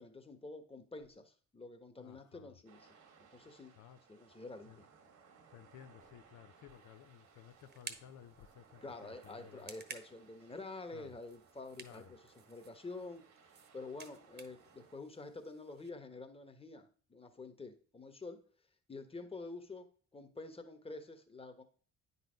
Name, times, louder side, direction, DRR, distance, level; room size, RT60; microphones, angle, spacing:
voice 1, 0.0-3.7 4.1-4.9 8.8-12.2 12.5-13.3 13.7-18.4 18.9-21.6, left 3 dB, 20° left, 1.3 m, -48 dB
voice 2, 2.0-2.6 3.8-4.0 4.7-4.8 5.5-9.7 10.9-11.1 11.8-12.1, left 10 dB, 75° left, 0.6 m, -57 dB
sound 1, 2.7-15.0, right 5 dB, 75° right, 1.6 m, -64 dB
sound 2, 6.7-15.9, right 5 dB, 35° right, 1.1 m, -55 dB
9.2 x 4.1 x 5.2 m
cardioid pair, 90°, 30 cm